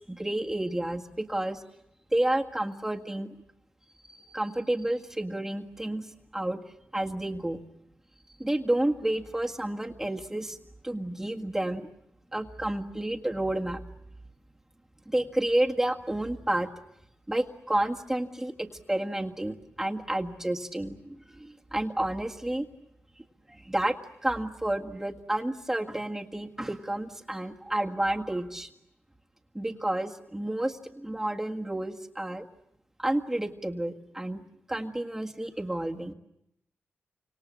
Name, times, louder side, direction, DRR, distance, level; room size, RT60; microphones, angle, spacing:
voice 1, 0.0-1.6 2.1-3.3 4.0-6.6 6.9-7.6 8.4-10.6 10.8-11.9 12.3-13.8 15.1-16.7 17.3-22.7 23.2-28.7 29.5-32.5 33.0-34.4 34.7-36.1, right 1 dB, 10° right, 2 dB, 1.8 m, -30 dB
29.5 x 26.5 x 7.5 m, 0.81 s
wide cardioid pair, 110°, 5 cm